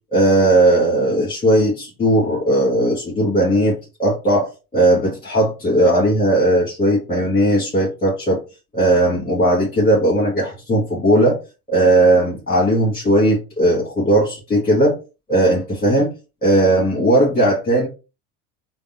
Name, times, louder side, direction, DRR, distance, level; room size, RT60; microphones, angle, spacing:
voice 1, 0.1-8.4 8.7-11.4 11.7-15.0 15.3-16.1 16.4-17.9, right 1 dB, 20° left, -3 dB, 1.4 m, -17 dB
3.4 x 2.2 x 2.5 m, 0.30 s
hypercardioid pair, 75°, 43 cm